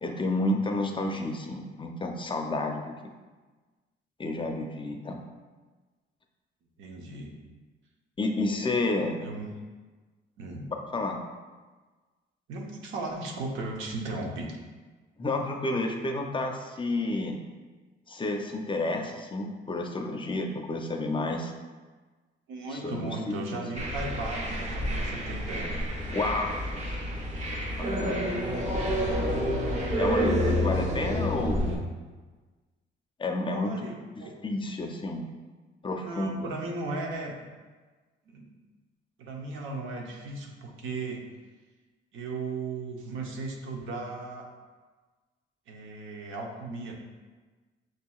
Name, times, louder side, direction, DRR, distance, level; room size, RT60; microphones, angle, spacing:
voice 1, 0.0-2.9 4.2-5.2 8.2-9.2 10.9-11.2 15.2-17.4 18.1-21.5 22.7-23.6 26.1-26.6 27.8-28.3 29.9-31.8 33.2-33.9 34.4-35.2 35.8-36.5, left 2 dB, 25° left, 3 dB, 0.5 m, -30 dB
voice 2, 6.8-7.3 9.2-9.6 10.4-10.7 12.5-14.6 22.5-25.8 33.5-34.3 35.9-37.3 38.3-38.5 39.2-41.2 42.1-44.5 45.7-46.9, right 3 dB, 80° right, 0 dB, 0.8 m, -36 dB
sound 1, 23.7-31.8, equal, 35° right, 1.0 m, -29 dB
6.1 x 2.7 x 2.3 m, 1.3 s
cardioid pair, 90°, 20 cm